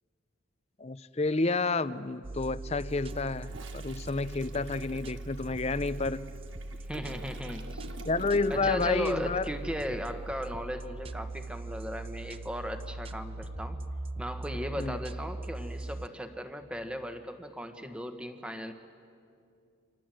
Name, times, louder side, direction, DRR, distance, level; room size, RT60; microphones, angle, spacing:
voice 1, 0.8-6.3 8.0-9.4 14.8-15.0, left 3 dB, 30° left, 15 dB, 0.6 m, -30 dB
sound 1, 2.2-16.1, right 2 dB, 30° right, 0.6 m, -40 dB
Toilet flush, 2.9-8.9 9.1-9.4, right 3 dB, 70° right, 1.6 m, -49 dB
voice 2, 6.9-7.9 8.5-13.8 14.2-18.7, equal, 5° right, 7 dB, 1.3 m, -37 dB
28.5 x 26.5 x 7.7 m, 2.5 s
head